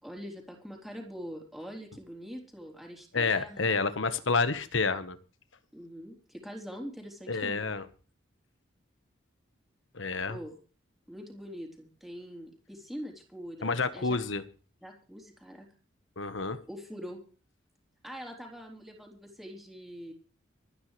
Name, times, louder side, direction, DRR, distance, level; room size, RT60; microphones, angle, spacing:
voice 1, 0.0-3.8 5.7-7.7 10.3-10.5 11.1-14.2 14.8-15.7 16.7-17.2 18.0-20.1, equal, ahead, 0 dB, 3.7 m, -43 dB
voice 2, 3.1-5.2 7.3-7.8 9.9-10.4 13.6-14.4 16.2-16.6, left 4 dB, 70° left, 11 dB, 1.3 m, -29 dB
25.5 x 10.0 x 3.3 m, 0.38 s
head